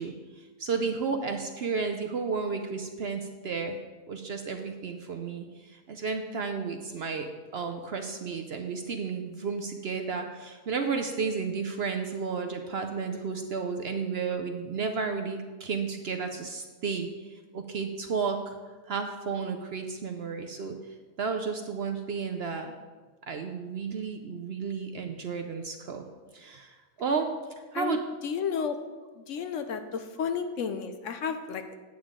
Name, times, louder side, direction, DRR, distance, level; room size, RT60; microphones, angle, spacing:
voice 1, 0.0-3.8 4.1-7.3 7.5-18.6 18.8-20.7 21.2-22.7 23.3-26.1 26.3-27.3 27.7-28.0, right 5 dB, 60° right, 5 dB, 0.7 m, -32 dB
voice 2, 27.7-28.8 29.2-31.7, left 6 dB, 70° left, 8 dB, 0.9 m, -32 dB
8.9 x 8.7 x 3.7 m, 1.3 s
omnidirectional pair, 1.5 m